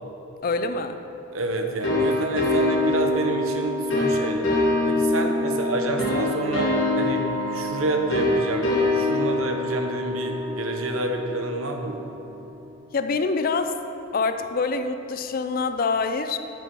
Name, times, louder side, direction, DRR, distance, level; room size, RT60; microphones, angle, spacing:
voice 1, 0.4-1.0 5.4-5.6 12.9-13.8 14.1-16.4, left 4 dB, 45° left, 9 dB, 0.4 m, -25 dB
voice 2, 1.3-7.3 7.5-12.1, right 2 dB, 80° right, 4 dB, 0.9 m, -28 dB
sound 1, 1.8-12.3, left 2 dB, 65° left, 2.0 m, -25 dB
8.2 x 7.2 x 5.4 m, 2.9 s
head